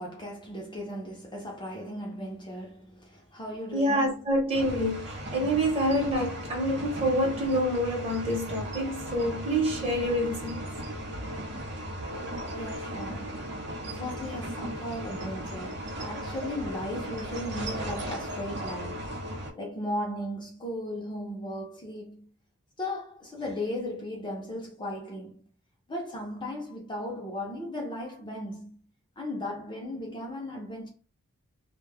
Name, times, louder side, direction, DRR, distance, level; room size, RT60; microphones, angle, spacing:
voice 1, 0.0-4.2 12.5-13.5 13.9-22.3 22.8-25.4 25.9-28.7 29.2-30.9, left 1 dB, 20° left, 0.5 m, -36 dB
voice 2, 3.7-10.6, equal, 25° right, 1.0 m, -27 dB
sound 1, 4.5-19.5, equal, 50° right, 0.7 m, -37 dB
2.2 x 2.0 x 3.3 m
head